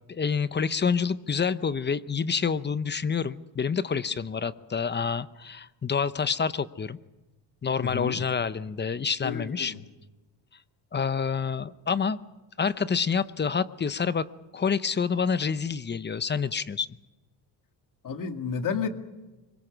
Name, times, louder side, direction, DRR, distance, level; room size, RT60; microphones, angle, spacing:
voice 1, 0.1-7.0 7.6-9.7 10.9-12.2 12.6-14.3 14.5-16.9, left 6 dB, 25° left, 15 dB, 0.8 m, -27 dB
voice 2, 7.8-8.2 9.2-9.8 18.0-18.9, left 6 dB, 45° left, 6 dB, 2.2 m, -31 dB
25.0 x 22.5 x 6.2 m, 1.1 s
cardioid pair, 125°, 43 cm